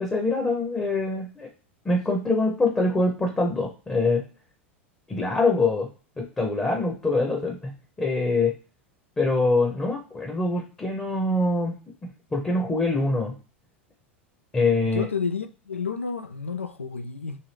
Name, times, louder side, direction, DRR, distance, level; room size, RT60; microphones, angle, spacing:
voice 1, 0.0-1.5 1.8-4.2 5.1-5.9 6.2-8.6 9.2-11.7 12.3-13.4 14.5-15.1, left 2 dB, 15° left, 0.7 m, -24 dB
voice 2, 14.8-17.4, left 5 dB, 90° left, 0.3 m, -30 dB
2.7 x 2.5 x 3.3 m
figure-of-eight pair, 85°, 7 cm